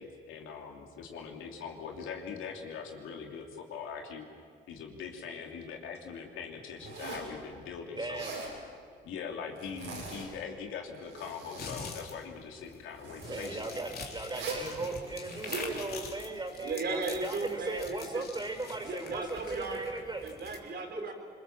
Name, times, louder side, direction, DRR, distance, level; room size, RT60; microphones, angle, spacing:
voice 1, 0.0-4.2 4.7-8.2 9.0-13.8, left 6 dB, 85° left, 2 dB, 3.0 m, -42 dB
Zipper (clothing), 6.8-7.3 8.0-8.5 9.6-10.3 10.9-11.9 13.0-13.6 14.3-14.7 15.2-15.7, right 4 dB, 85° right, 7.0 m, -41 dB
voice 2, 7.9-8.4 13.2-20.3 20.9-21.0, right 2 dB, 20° right, 4 dB, 4.8 m, -38 dB
sound 1, 11.6-20.6, left 4 dB, 50° left, 3.4 m, -45 dB
voice 3, 16.6-18.2 18.8-19.9 20.2-21.1, right 3 dB, 55° right, 2 dB, 4.5 m, -36 dB
25.5 x 22.5 x 7.4 m, 2.1 s
cardioid pair, 90°, 20 cm